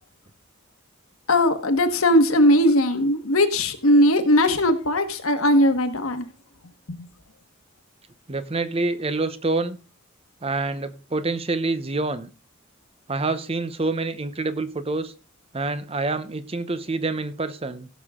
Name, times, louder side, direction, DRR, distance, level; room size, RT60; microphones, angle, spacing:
voice 1, 1.3-6.2 6.9-7.1, left 1 dB, 75° left, 1.5 m, -19 dB
voice 2, 8.3-9.8 10.4-12.3 13.1-15.1 15.5-17.9, right 3 dB, 25° right, 0.7 m, -27 dB
16.5 x 6.6 x 3.7 m
head